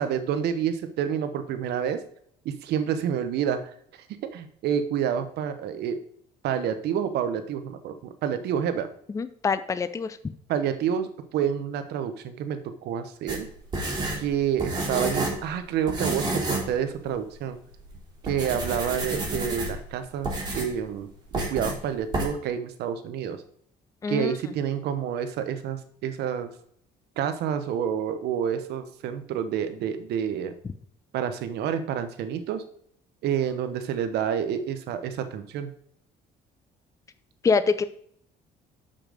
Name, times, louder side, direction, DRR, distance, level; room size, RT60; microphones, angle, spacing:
voice 1, 0.0-2.0 2.4-3.6 4.3-6.0 6.4-8.9 10.5-13.5 14.2-17.6 18.2-23.4 24.1-26.5 27.2-30.5 31.1-32.6 33.2-35.7, right 8 dB, 75° right, 10 dB, 1.0 m, -28 dB
voice 2, 9.1-10.2 24.0-24.3 30.6-30.7 37.4-37.8, left 5 dB, 20° left, 13 dB, 0.5 m, -25 dB
sound 1, 13.3-15.5 15.9-16.7 17.1-17.2 17.8-17.9 18.2-19.9 20.2-20.8 21.3-21.8 22.1-22.2, right 2 dB, 25° right, 3.2 m, -29 dB
6.6 x 5.8 x 5.1 m, 0.65 s
cardioid pair, 110°, 17 cm